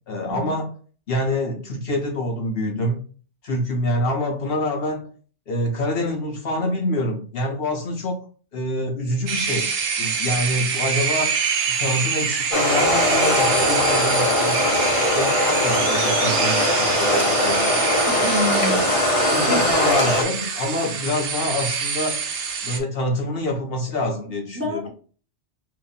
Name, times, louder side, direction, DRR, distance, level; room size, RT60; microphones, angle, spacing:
voice 1, 0.1-0.7 1.1-3.0 3.4-5.1 5.5-8.2 8.5-9.7 10.0-11.4 11.7-18.0 18.6-18.9 19.3-22.3 22.6-24.8, left 1 dB, 60° left, 2 dB, 0.9 m, -26 dB
sound 1, 9.3-22.8, right 6 dB, 85° right, 1.0 m, -25 dB
sound 2, 12.5-20.2, left 1 dB, 40° left, 0.6 m, -21 dB
voice 2, 18.0-19.0 19.4-19.6 24.6-24.9, equal, 15° right, -3 dB, 1.0 m, -27 dB
2.8 x 2.4 x 3.8 m, 0.39 s
omnidirectional pair, 1.2 m